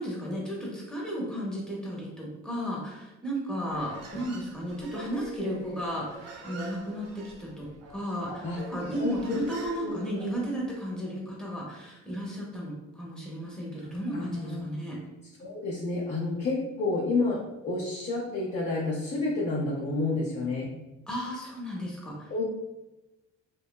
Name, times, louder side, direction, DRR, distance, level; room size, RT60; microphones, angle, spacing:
voice 1, 0.0-15.0 21.1-22.4, equal, ahead, -4 dB, 0.8 m, -34 dB
Human voice, 3.6-10.7, right 3 dB, 55° right, 0.6 m, -45 dB
voice 2, 9.0-10.0 14.1-14.6 15.4-20.7 22.3-22.4, left 3 dB, 35° left, -5 dB, 0.6 m, -30 dB
2.6 x 2.3 x 2.2 m, 1.0 s
cardioid pair, 90°, 30 cm